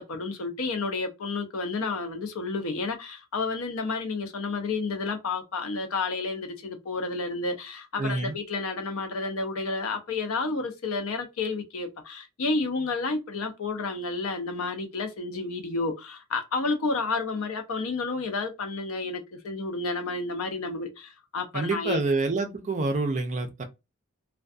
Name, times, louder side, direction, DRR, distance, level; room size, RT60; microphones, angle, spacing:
voice 1, 0.0-22.0, left 3 dB, 65° left, 0.5 m, -31 dB
voice 2, 8.0-8.4 21.5-23.6, right 3 dB, 35° right, 0.4 m, -27 dB
2.5 x 2.2 x 2.3 m
head